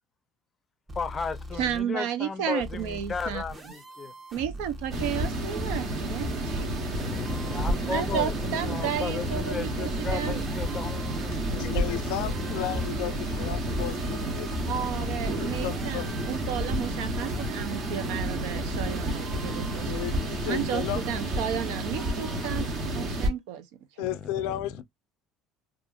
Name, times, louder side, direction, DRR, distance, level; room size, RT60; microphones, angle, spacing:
sound 1, 0.9-1.8 2.6-5.2 6.0-8.7 9.5-20.6, equal, 20° right, 0.7 m, -41 dB
voice 1, 1.0-4.1 7.0-11.7 21.9-22.6 24.0-24.8, left 5 dB, 25° left, 0.5 m, -35 dB
voice 2, 1.6-3.4 4.3-6.7 7.8-10.4 14.7-20.0 20.5-23.7 24.0-24.1, right 9 dB, 85° right, 0.6 m, -33 dB
sound 2, 4.9-23.3, right 1 dB, 45° right, 0.9 m, -30 dB
voice 3, 11.5-14.6 15.0-16.4 19.8-21.0 24.0-24.8, left 13 dB, 85° left, 0.4 m, -34 dB
2.7 x 2.4 x 2.4 m
cardioid pair, 130°, 0 cm